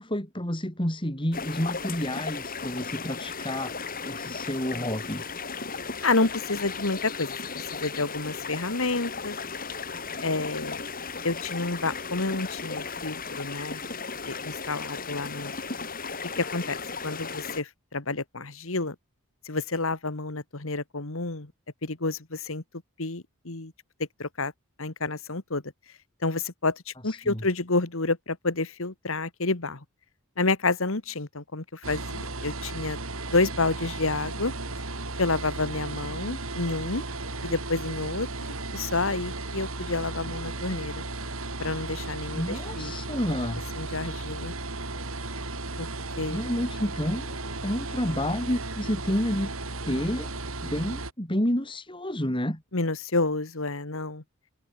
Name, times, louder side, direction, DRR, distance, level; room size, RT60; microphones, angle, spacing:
voice 1, 0.0-5.2 27.0-27.4 42.3-43.6 46.3-47.4 47.6-49.5 49.8-52.6, equal, 20° left, 4.3 m, -30 dB
sound 1, 1.3-17.6, left 5 dB, 40° left, 6.4 m, -36 dB
voice 2, 6.0-7.4 7.7-9.4 10.2-10.8 11.2-13.8 14.3-15.5 16.4-16.8 17.0-19.0 19.5-21.5 21.8-22.6 23.0-23.7 24.2-24.5 24.8-25.6 26.2-29.8 30.4-33.0 33.3-34.5 35.2-37.0 37.4-38.3 38.7-41.0 41.6-42.9 43.8-44.5 45.8-45.9 46.2-46.4 52.7-54.2, left 3 dB, 65° left, 1.8 m, -29 dB
sound 2, 31.8-51.1, right 2 dB, 65° right, 4.8 m, -35 dB
head